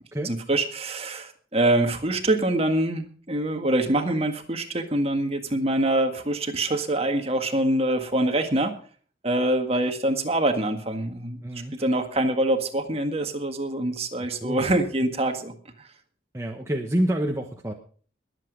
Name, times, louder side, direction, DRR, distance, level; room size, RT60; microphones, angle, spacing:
voice 1, 0.2-8.8 9.2-11.4 11.8-15.5, right 1 dB, 35° right, 6 dB, 1.8 m, -25 dB
voice 2, 11.4-11.7 14.4-14.6 16.3-17.7, right 1 dB, 15° right, 1 dB, 1.2 m, -27 dB
21.0 x 8.2 x 5.2 m, 0.43 s
head